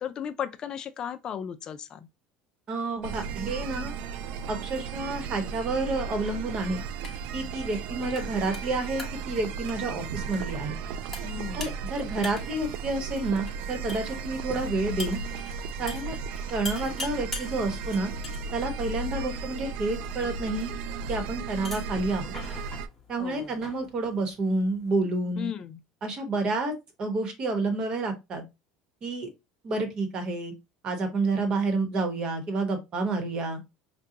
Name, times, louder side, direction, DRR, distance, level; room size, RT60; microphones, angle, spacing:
voice 1, 0.0-2.1 11.2-11.8 23.2-23.6 25.4-25.8, left 8 dB, 35° left, 0.4 m, -35 dB
voice 2, 2.7-3.9 4.5-6.8 7.3-10.8 11.5-15.2 15.8-16.2 16.5-18.1 18.5-20.7 21.1-22.4 23.1-25.5 26.0-26.7 27.0-28.4 29.0-29.3 29.6-30.5 30.8-33.6, right 2 dB, 35° right, 1.1 m, -29 dB
sound 1, 3.0-22.9, right 5 dB, 65° right, 0.3 m, -35 dB
sound 2, 6.1-25.0, left 2 dB, 10° left, 1.0 m, -45 dB
5.0 x 2.2 x 2.8 m
cardioid pair, 140°, 2 cm